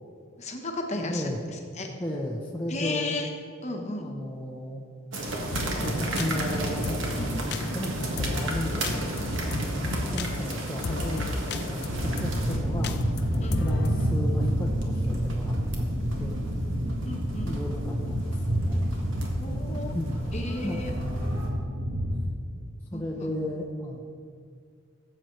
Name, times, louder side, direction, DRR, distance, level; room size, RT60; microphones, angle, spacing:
voice 1, 0.4-1.2 1.8-1.9 2.7-3.3 3.6-4.1 7.2-7.3 13.4-13.6 17.0-17.6 19.4-19.9 20.3-20.9 22.9-23.3, left 2 dB, 30° left, 2 dB, 1.0 m, -33 dB
voice 2, 0.9-1.4 2.0-3.3 4.0-4.8 5.8-7.1 7.7-9.1 9.8-15.9 16.2-16.5 17.4-18.8 19.9-20.2 20.6-21.5 22.9-24.0, left 1 dB, 10° left, -3 dB, 0.6 m, -34 dB
sound 1, 5.1-21.5, right 1 dB, 60° right, 1.5 m, -34 dB
sound 2, 5.5-14.1, left 3 dB, 50° left, 0.5 m, -34 dB
sound 3, 11.9-22.2, equal, 80° right, 1.1 m, -29 dB
14.5 x 7.6 x 3.1 m, 2.2 s
head